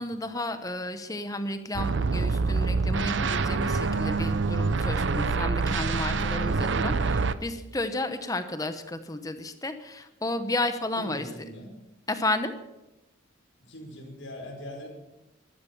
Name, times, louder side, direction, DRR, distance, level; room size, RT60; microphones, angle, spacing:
voice 1, 0.0-11.3 12.1-12.5, left 2 dB, 20° left, 9 dB, 0.9 m, -32 dB
sound 1, 1.7-7.3, right 4 dB, 65° right, 0.7 m, -26 dB
voice 2, 11.0-11.7 13.7-14.9, left 1 dB, 80° left, 1 dB, 4.9 m, -41 dB
13.0 x 13.0 x 6.9 m, 0.96 s
head